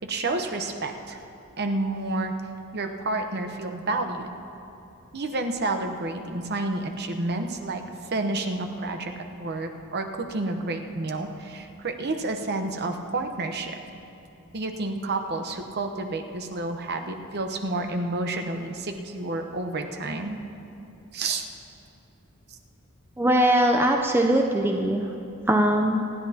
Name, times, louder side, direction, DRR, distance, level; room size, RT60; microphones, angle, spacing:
voice 1, 0.0-1.2 1.6-2.3 2.7-4.4 5.1-7.8 8.1-13.8 14.5-20.4 21.1-21.5 22.5-22.6, right 2 dB, 50° right, 5 dB, 0.9 m, -30 dB
voice 2, 23.2-25.1 25.5-26.0, right 1 dB, 10° right, 2 dB, 0.5 m, -21 dB
26.5 x 10.5 x 2.9 m, 2.8 s
head